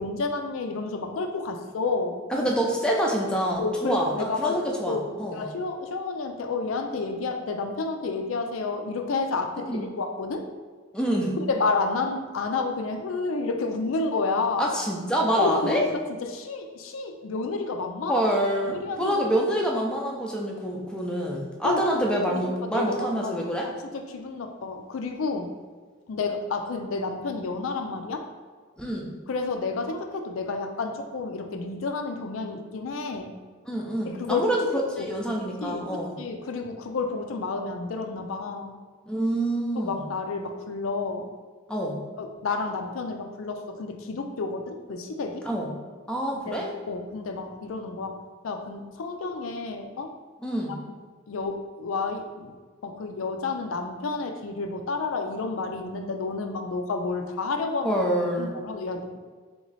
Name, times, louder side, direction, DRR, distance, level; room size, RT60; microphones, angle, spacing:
voice 1, 0.0-2.2 3.6-4.6 4.9-10.5 11.4-14.7 15.4-15.9 16.3-18.2 18.6-19.4 21.6-25.6 26.1-28.2 29.3-33.3 34.0-34.5 35.0-35.1 35.6-38.7 39.8-41.3 42.2-45.5 46.5-46.6 46.9-50.1 51.3-52.5 52.8-58.0 58.4-59.2, left 3 dB, 85° left, 5 dB, 0.4 m, -30 dB
voice 2, 2.3-4.1 4.4-5.5 9.6-9.9 10.9-11.4 14.6-15.9 18.1-23.7 28.8-29.1 33.7-36.2 39.1-40.0 41.7-42.0 45.4-45.7 46.1-46.7 50.4-50.8 57.8-58.5, right 1 dB, 5° left, -2 dB, 0.5 m, -26 dB
3.5 x 3.0 x 4.0 m, 1.5 s
head